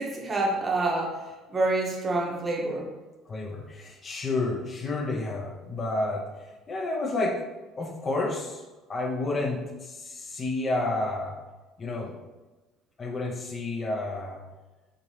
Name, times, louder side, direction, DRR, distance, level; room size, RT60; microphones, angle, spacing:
voice 1, 0.0-2.9, right 2 dB, 25° right, -1 dB, 0.8 m, -27 dB
voice 2, 3.3-7.4 7.8-8.6 8.9-11.4 11.8-12.1 13.0-14.4, left 2 dB, 30° left, 0 dB, 0.6 m, -30 dB
3.8 x 2.7 x 3.0 m, 1.2 s
figure-of-eight pair, 60°, 0 cm